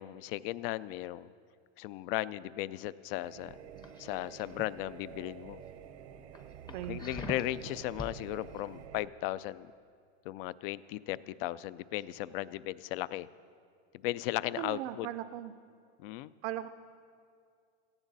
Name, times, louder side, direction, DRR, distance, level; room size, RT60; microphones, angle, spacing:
voice 1, 0.0-1.3 1.8-3.6 4.0-5.6 6.9-9.7 10.3-13.3 14.0-15.1 16.0-16.3, left 15 dB, 55° left, 18 dB, 0.5 m, -36 dB
sound 1, 3.2-9.1, right 7 dB, 85° right, 1.1 m, -49 dB
sound 2, 3.8-4.6 5.1-5.4 5.8-5.9 6.3-8.1 8.5-8.7, left 2 dB, 15° left, 0.7 m, -43 dB
voice 2, 14.6-15.5 16.4-16.7, right 13 dB, 70° right, 9 dB, 0.6 m, -38 dB
18.0 x 14.5 x 4.0 m, 2.2 s
supercardioid pair, 150°, 34 cm